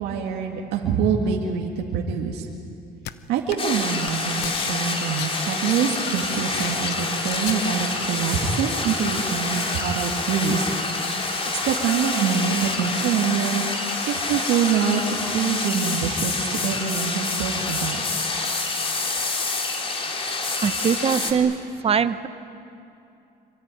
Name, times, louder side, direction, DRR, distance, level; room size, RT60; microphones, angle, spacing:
voice 1, 0.0-2.5 3.3-10.7 11.5-18.0, right 7 dB, 85° right, 0 dB, 2.2 m, -25 dB
sound 1, 3.0-3.1 3.5-3.8 4.0-4.7 5.0-7.6, left 13 dB, 80° left, 0.9 m, -35 dB
sound 2, 3.6-21.3, left 3 dB, 35° left, 3.5 m, -27 dB
voice 2, 20.6-21.6 21.8-22.3, right 7 dB, 35° right, 12 dB, 0.9 m, -21 dB
25.5 x 24.5 x 9.3 m, 2.7 s
cardioid pair, 110°, 17 cm